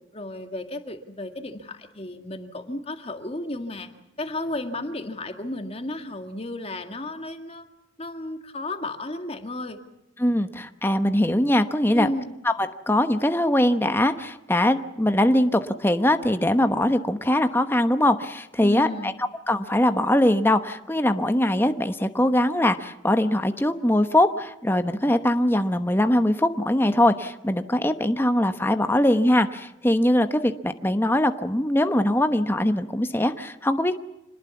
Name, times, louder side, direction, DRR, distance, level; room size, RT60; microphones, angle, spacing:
voice 1, 0.1-3.9 4.2-7.7 8.0-9.8 11.9-12.3 18.6-19.1, left 2 dB, 30° left, 7 dB, 2.0 m, -33 dB
voice 2, 10.2-12.1 12.4-19.1 19.5-34.0, left 1 dB, 10° left, 9 dB, 1.0 m, -22 dB
26.5 x 20.5 x 7.2 m, 0.89 s
head